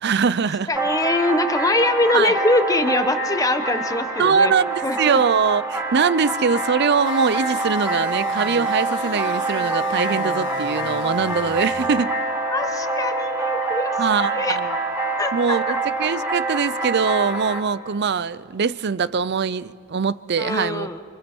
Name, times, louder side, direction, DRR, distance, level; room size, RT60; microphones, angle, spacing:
voice 1, 0.0-0.7 2.1-2.3 4.2-12.2 14.0-14.7 15.3-20.9, right 5 dB, 50° right, 0.5 m, -22 dB
voice 2, 0.7-4.5 4.8-5.2 12.5-14.6 15.2-15.8 20.4-21.0, left 2 dB, 15° left, 1.2 m, -23 dB
sound 1, 0.7-17.6, right 2 dB, 15° right, 4.7 m, -26 dB
sound 2, 7.1-11.9, left 3 dB, 60° left, 1.5 m, -38 dB
29.0 x 26.0 x 4.5 m
head